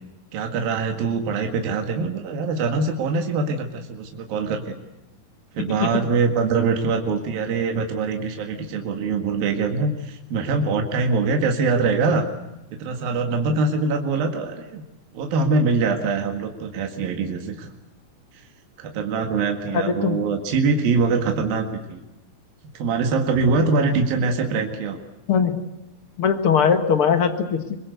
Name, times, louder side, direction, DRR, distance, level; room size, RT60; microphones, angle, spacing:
voice 1, 0.3-4.8 5.5-12.2 12.8-14.8 15.1-17.7 18.8-22.0 22.8-25.0, right 4 dB, 70° right, 4 dB, 3.7 m, -23 dB
voice 2, 19.7-20.2 25.3-25.6 26.2-27.8, left 6 dB, 50° left, 8 dB, 1.9 m, -20 dB
24.5 x 21.0 x 8.1 m, 0.97 s
omnidirectional pair, 4.4 m